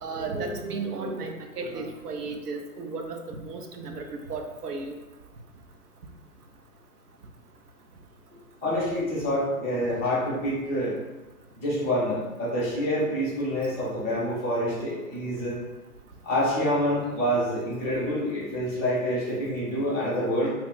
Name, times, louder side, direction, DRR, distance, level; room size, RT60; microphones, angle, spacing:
voice 1, 0.0-4.0 4.3-5.0, right 3 dB, 80° right, 4 dB, 0.7 m, -34 dB
voice 2, 8.6-10.9 11.5-15.6 16.2-20.5, equal, 5° right, -17 dB, 0.4 m, -27 dB
3.0 x 2.1 x 3.8 m, 1.1 s
figure-of-eight pair, 125°, 46 cm